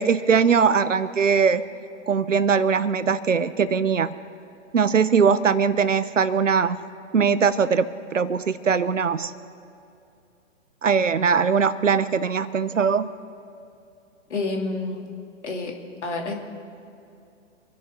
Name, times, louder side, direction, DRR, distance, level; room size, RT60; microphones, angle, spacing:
voice 1, 0.0-1.6 2.1-4.1 4.7-6.8 7.1-9.3 10.8-13.1, right 6 dB, 75° right, 15 dB, 0.9 m, -21 dB
voice 2, 14.3-15.0 15.4-15.8 16.0-16.3, left 3 dB, 65° left, 1 dB, 3.0 m, -28 dB
27.0 x 11.0 x 3.8 m, 2.6 s
figure-of-eight pair, 120°, 38 cm